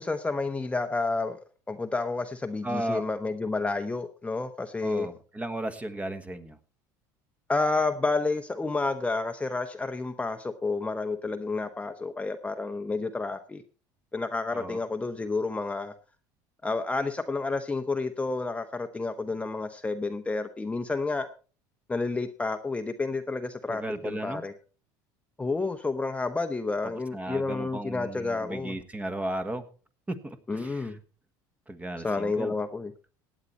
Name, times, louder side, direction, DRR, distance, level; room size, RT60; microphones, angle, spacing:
voice 1, 0.0-1.4 1.7-5.1 7.5-13.6 14.1-15.9 16.6-21.3 21.9-24.5 25.4-28.8 30.5-31.0 32.0-32.9, left 3 dB, 15° left, 6 dB, 0.9 m, -30 dB
voice 2, 2.6-3.0 4.8-6.6 14.5-14.8 23.7-24.4 27.1-29.7 30.1-30.9 31.7-32.5, right 1 dB, 15° right, 9 dB, 1.4 m, -35 dB
16.0 x 9.0 x 4.2 m, 0.37 s
supercardioid pair, 90°, 10 cm